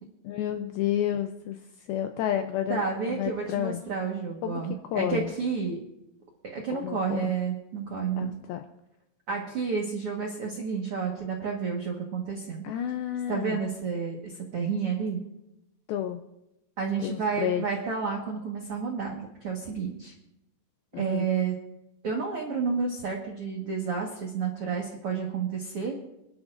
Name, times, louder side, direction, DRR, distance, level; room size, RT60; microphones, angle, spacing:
voice 1, 0.2-1.6 1.9-2.8 3.1-3.8 4.4-5.3 6.7-7.2 8.2-8.7 12.6-13.6 15.9-16.2 17.0-17.6 20.9-21.3, left 10 dB, 85° left, 6 dB, 2.2 m, -30 dB
voice 2, 2.7-5.8 6.4-8.3 9.3-12.6 13.3-15.2 16.8-20.1 21.0-21.5 22.0-26.0, right 5 dB, 70° right, -1 dB, 1.3 m, -30 dB
27.5 x 11.5 x 2.5 m, 0.87 s
omnidirectional pair, 4.9 m